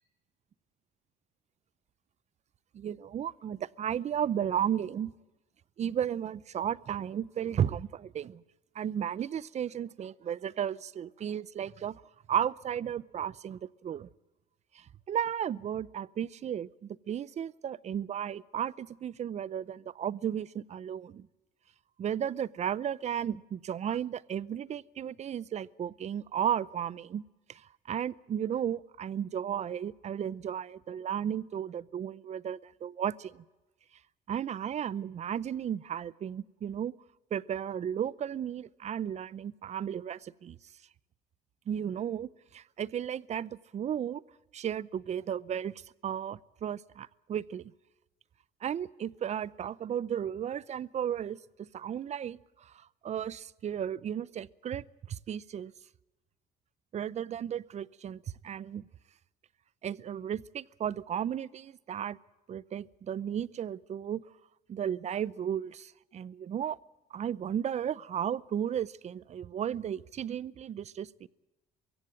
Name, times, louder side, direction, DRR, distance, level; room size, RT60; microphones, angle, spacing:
voice 1, 2.7-5.1 5.8-8.4 8.7-12.0 12.3-14.1 14.7-21.3 22.0-27.2 27.5-33.4 34.3-36.9 37.3-40.6 41.7-44.2 44.5-45.7 46.0-47.7 48.6-55.7 56.9-58.9 59.8-62.2 62.5-64.2 64.7-66.8 67.1-71.1, right 9 dB, 40° right, 22 dB, 0.7 m, -34 dB
23.0 x 16.0 x 8.7 m, 1.1 s
cardioid pair, 110°, 17 cm